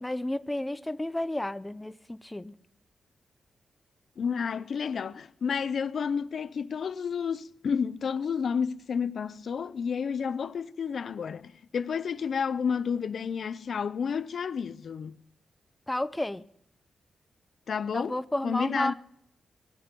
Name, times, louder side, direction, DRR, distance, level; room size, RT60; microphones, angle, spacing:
voice 1, 0.0-2.5 15.9-16.4 17.9-18.9, left 1 dB, 10° left, 0.5 m, -31 dB
voice 2, 4.2-15.2 17.7-18.9, left 6 dB, 65° left, 0.6 m, -31 dB
19.0 x 6.8 x 8.9 m
cardioid pair, 85°, 0 cm